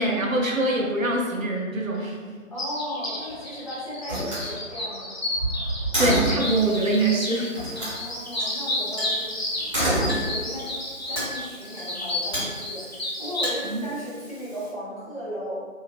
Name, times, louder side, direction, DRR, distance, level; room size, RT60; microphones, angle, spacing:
voice 1, 0.0-2.2 6.0-7.5 13.6-13.8, right 2 dB, 80° right, -1 dB, 0.8 m, -24 dB
voice 2, 2.5-5.2 7.8-15.6, equal, 25° left, -12 dB, 0.9 m, -36 dB
sound 1, 2.6-13.5, left 1 dB, 50° left, 0.7 m, -31 dB
Slam, 3.0-3.5 4.0-6.5 7.5-8.0 9.5-10.7, right 1 dB, 25° right, 1.2 m, -27 dB
Chink clink, 6.4-14.7, equal, ahead, 1.2 m, -39 dB
3.1 x 2.7 x 2.5 m, 1.5 s
figure-of-eight pair, 165°, 40 cm